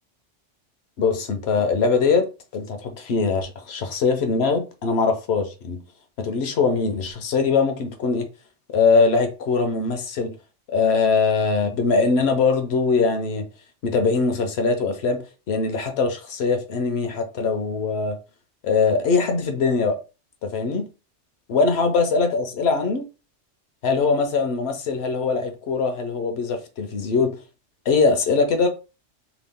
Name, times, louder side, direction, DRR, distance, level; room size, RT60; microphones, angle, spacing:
voice 1, 1.0-2.3 2.5-5.8 6.2-8.3 8.7-10.3 10.7-13.5 13.8-18.2 18.6-20.0 20.4-20.9 21.5-23.1 23.8-27.4 27.9-28.7, left 4 dB, 65° left, 0.8 m, -22 dB
2.9 x 2.3 x 3.5 m
omnidirectional pair, 1.2 m